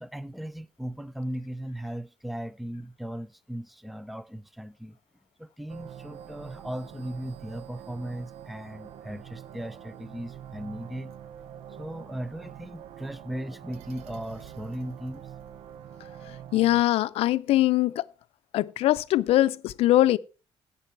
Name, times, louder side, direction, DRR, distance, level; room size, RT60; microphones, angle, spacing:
voice 1, 0.0-5.0 5.4-11.1 11.8-15.2, right 1 dB, ahead, 0.4 m, -37 dB
sound 1, 5.7-16.8, right 10 dB, 85° right, 0.6 m, -45 dB
voice 2, 16.5-18.0 18.5-20.2, left 15 dB, 80° left, 0.5 m, -22 dB
16.0 x 5.5 x 4.5 m
cardioid pair, 155°, 10 cm